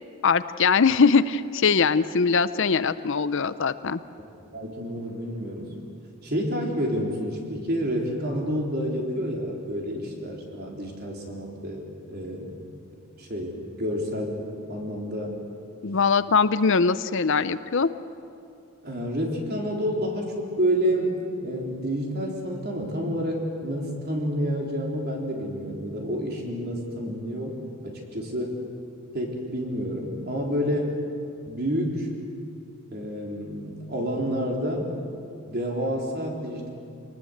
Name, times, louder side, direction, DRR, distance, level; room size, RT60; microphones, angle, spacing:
voice 1, 0.2-4.0 15.8-17.9, left 5 dB, 55° left, 14 dB, 0.6 m, -21 dB
voice 2, 4.5-5.7 6.2-12.6 13.2-15.4 18.8-27.6 27.8-28.6 29.1-31.0 31.5-32.1 32.9-34.9 35.5-36.7, equal, 45° right, 0 dB, 3.8 m, -29 dB
26.0 x 19.5 x 7.9 m, 2.5 s
head